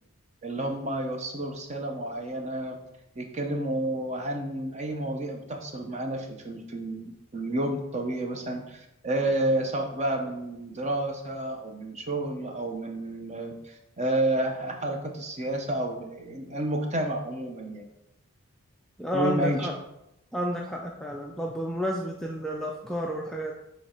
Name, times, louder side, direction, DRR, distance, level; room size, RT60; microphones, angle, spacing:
voice 1, 0.4-2.8 3.2-17.8 19.1-19.7, right 1 dB, 30° right, 3 dB, 0.7 m, -30 dB
voice 2, 19.0-19.7 20.3-23.5, equal, ahead, -1 dB, 0.3 m, -31 dB
7.2 x 3.2 x 4.4 m, 0.86 s
head